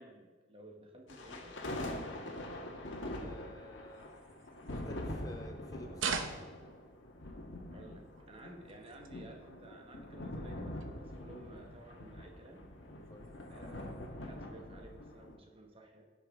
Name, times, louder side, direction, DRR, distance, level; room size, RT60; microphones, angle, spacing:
voice 1, 0.0-1.6 7.7-12.7 13.5-16.0, right 1 dB, 30° right, 2 dB, 1.1 m, -54 dB
sound 1, 1.1-15.4, left 1 dB, 80° left, 1.4 m, -44 dB
voice 2, 3.1-4.1 4.7-6.2 13.1-13.3, left 1 dB, 20° left, 4 dB, 0.5 m, -51 dB
sound 2, 3.9-5.5 5.9-7.5 8.0-9.3 9.7-10.1 10.4-10.5 10.8-11.2 11.7-11.8 12.2-12.7 13.0-14.1, right 6 dB, 85° right, 0.8 m, -44 dB
16.0 x 6.0 x 3.6 m, 1.6 s
head